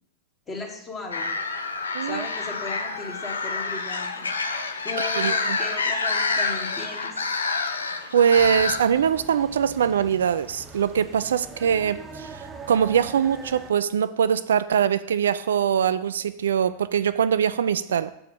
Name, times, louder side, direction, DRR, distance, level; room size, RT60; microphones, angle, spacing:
voice 1, 0.5-1.4 2.0-4.3 4.8-7.2, left 3 dB, 20° left, 0 dB, 1.9 m, -36 dB
sound 1, 1.1-8.8, left 4 dB, 75° left, 0.7 m, -28 dB
voice 2, 1.9-2.2 5.1-5.6 8.1-18.1, right 8 dB, 65° right, 13 dB, 0.3 m, -22 dB
sound 2, 8.3-13.7, right 3 dB, 15° right, 0.9 m, -42 dB
7.0 x 4.7 x 7.0 m, 0.79 s
figure-of-eight pair, 90°, 0 cm